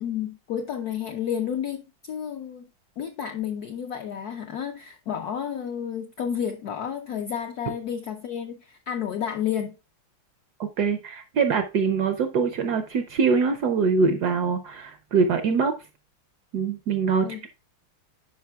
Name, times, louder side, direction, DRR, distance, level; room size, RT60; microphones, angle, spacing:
voice 1, 0.0-2.7 3.0-9.8 17.2-17.4, left 8 dB, 75° left, 0.9 m, -31 dB
voice 2, 10.6-15.7 16.5-17.5, right 5 dB, 75° right, 0.9 m, -23 dB
10.5 x 5.0 x 2.3 m
omnidirectional pair, 2.3 m